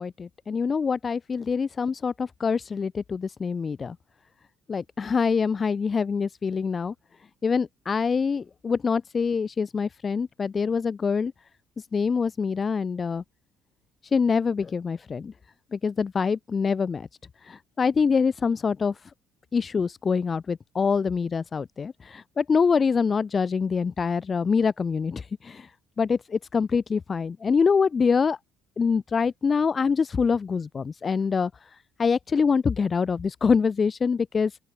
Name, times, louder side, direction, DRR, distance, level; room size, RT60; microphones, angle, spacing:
voice 1, 0.0-4.0 4.7-6.9 7.4-11.3 11.8-13.2 14.1-15.3 15.7-17.1 17.4-18.9 19.5-25.7 26.0-28.4 28.8-31.5 32.0-34.6, left 5 dB, 30° left, 0.9 m, -25 dB
open air
cardioid pair, 130°, 0 cm